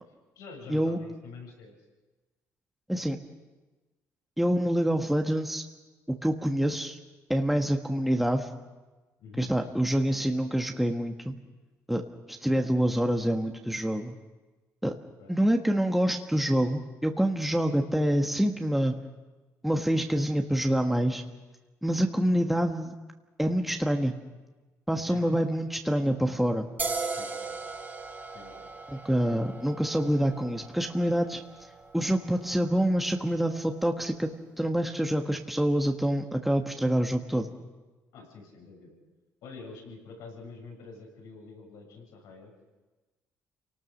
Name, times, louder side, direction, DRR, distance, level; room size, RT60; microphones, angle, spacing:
voice 1, 0.4-1.7 9.2-9.5 15.2-15.3 25.1-25.5 27.1-27.5 28.3-28.7 38.1-39.0 39.4-42.5, left 4 dB, 80° left, 1 dB, 7.2 m, -46 dB
voice 2, 4.4-5.6 6.1-7.0 7.3-8.5 9.4-11.4 11.9-12.0 12.3-14.1 14.8-14.9 15.3-19.0 19.6-21.2 21.8-22.9 23.4-24.1 24.9-26.7 28.9-31.4 31.9-34.3 34.6-37.5, equal, ahead, 3 dB, 1.4 m, -26 dB
sound 1, 26.8-34.1, right 4 dB, 30° right, 3.1 m, -39 dB
28.0 x 18.5 x 6.5 m, 1.2 s
cardioid pair, 85°, 6 cm